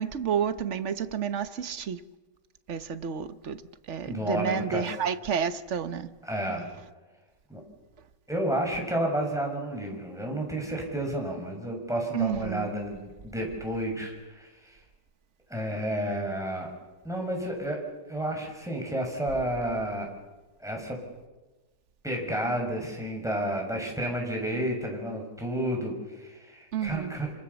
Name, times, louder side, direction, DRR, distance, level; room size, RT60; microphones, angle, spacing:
voice 1, 0.0-2.0 2.7-3.6 3.9-6.1 12.1-12.7 26.7-27.1, right 8 dB, 45° right, 1.2 m, -30 dB
voice 2, 4.0-4.9 6.2-6.7 7.5-7.6 8.3-14.8 15.5-16.7 17.0-17.8 18.1-20.1 20.6-21.0 22.0-27.3, right 1 dB, ahead, 6.5 m, -31 dB
27.0 x 26.5 x 7.1 m
omnidirectional pair, 1.9 m